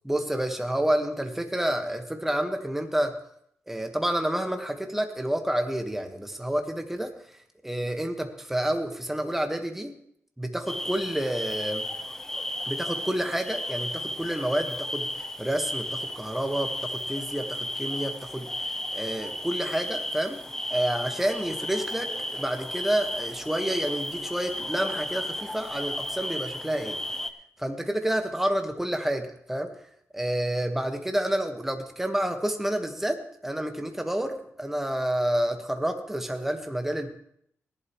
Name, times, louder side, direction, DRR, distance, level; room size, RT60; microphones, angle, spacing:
voice 1, 0.0-3.1 3.7-7.1 7.6-9.9 10.4-11.8 12.7-18.5 18.9-20.4 20.7-27.0 27.6-29.7 30.1-37.1, right 1 dB, 5° right, 5 dB, 1.3 m, -29 dB
sound 1, 10.7-27.3, left 1 dB, 10° left, 0.7 m, -34 dB
18.0 x 11.5 x 3.1 m, 0.70 s
wide cardioid pair, 110°, 5 cm